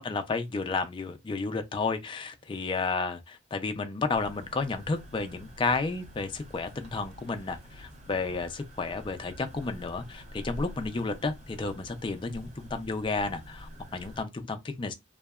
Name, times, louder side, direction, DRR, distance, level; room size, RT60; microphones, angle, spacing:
voice 1, 0.0-14.9, left 3 dB, 25° left, 0.3 m, -32 dB
sound 1, 4.1-14.2, equal, 35° right, 0.7 m, -47 dB
2.7 x 2.1 x 2.2 m
head